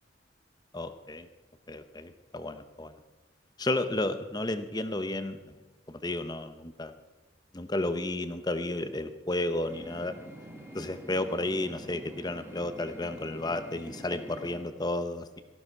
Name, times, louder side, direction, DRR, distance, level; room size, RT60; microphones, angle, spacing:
voice 1, 0.7-1.3 1.7-2.9 3.6-5.5 5.9-6.9 7.5-10.1 10.7-15.4, left 2 dB, 20° left, 10 dB, 0.8 m, -32 dB
sound 1, 9.7-14.6, right 1 dB, 15° right, 1.8 m, -46 dB
18.0 x 14.0 x 4.7 m, 1.2 s
head